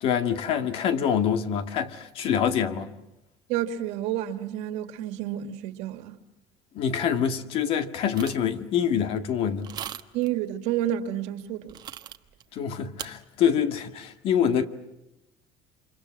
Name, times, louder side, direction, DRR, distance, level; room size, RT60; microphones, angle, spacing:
voice 1, 0.0-2.9 6.7-9.7 12.5-14.7, left 8 dB, 50° left, 2.0 m, -25 dB
voice 2, 3.5-6.2 10.1-11.8, right 12 dB, 70° right, 2.2 m, -30 dB
sound 1, 8.2-8.5 9.6-10.3 11.7-12.4 13.0-13.1, right 10 dB, 35° right, 1.1 m, -38 dB
29.0 x 26.5 x 7.5 m
cardioid pair, 155°, 12 cm